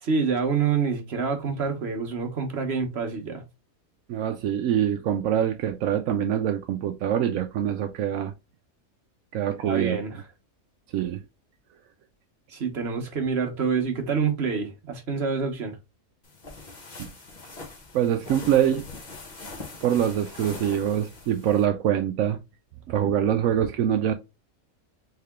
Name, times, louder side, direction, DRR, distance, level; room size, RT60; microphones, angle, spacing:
voice 1, 0.0-3.4 9.6-10.2 12.5-15.8, right 5 dB, 50° right, 1.2 m, -27 dB
voice 2, 4.1-8.3 9.3-10.0 10.9-11.2 17.0-17.1 17.9-18.9 19.8-22.4 22.9-24.1, right 10 dB, 70° right, 0.9 m, -24 dB
sound 1, 16.2-21.7, left 3 dB, 35° left, 1.0 m, -42 dB
3.7 x 3.4 x 3.4 m
omnidirectional pair, 1.5 m